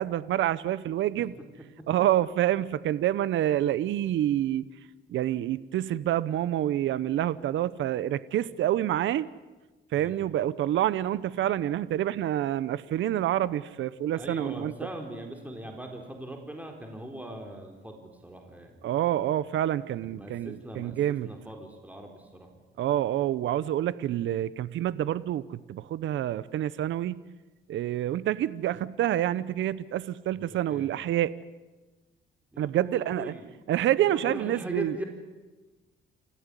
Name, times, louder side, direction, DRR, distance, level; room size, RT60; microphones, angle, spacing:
voice 1, 0.0-1.3 1.9-4.6 5.1-9.3 9.9-14.7 18.8-21.3 22.8-27.1 27.7-31.3 32.6-33.3 33.7-34.9, right 12 dB, 75° right, 17 dB, 0.8 m, -27 dB
voice 2, 9.9-10.3 14.1-18.8 20.0-21.0 21.2-22.5 30.3-30.9 32.5-33.5 34.0-35.0, right 1 dB, 5° right, 2 dB, 4.2 m, -40 dB
28.5 x 15.5 x 9.9 m, 1.2 s
cardioid pair, 90°, 20 cm